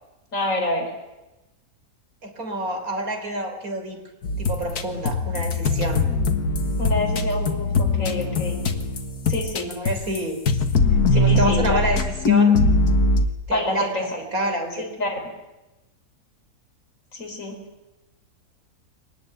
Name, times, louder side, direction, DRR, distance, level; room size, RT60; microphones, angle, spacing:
voice 1, 0.3-0.9 6.8-8.6 9.3-9.8 11.1-11.8 13.5-14.2 14.8-15.3 17.1-17.6, left 1 dB, 60° left, 2 dB, 4.7 m, -27 dB
voice 2, 2.2-4.0 4.4-6.0 9.8-10.4 11.1-12.6 13.5-13.9 14.3-14.9, right 1 dB, 70° right, 5 dB, 4.2 m, -27 dB
sound 1, 4.2-10.2 10.5-13.3, left 3 dB, 90° left, 2.0 m, -21 dB
23.5 x 19.0 x 9.1 m, 1.0 s
omnidirectional pair, 1.6 m